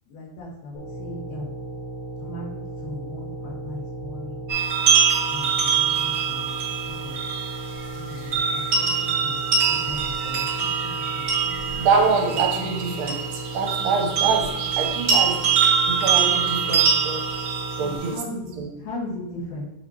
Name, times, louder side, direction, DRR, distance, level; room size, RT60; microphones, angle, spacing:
voice 1, 0.1-1.6 2.2-4.5 5.3-7.2 7.9-11.8 12.5-12.6 17.8-19.7, left 1 dB, 80° left, -4 dB, 3.4 m, -38 dB
sound 1, 0.7-18.0, right 2 dB, 60° left, 2.1 m, -36 dB
sound 2, 4.5-18.1, right 6 dB, 50° right, 1.5 m, -24 dB
voice 2, 11.8-13.2 13.5-15.4 15.9-17.2 17.8-18.2 18.6-18.7, right 5 dB, 80° right, 1 dB, 2.5 m, -24 dB
8.2 x 4.2 x 2.9 m, 0.89 s
omnidirectional pair, 4.2 m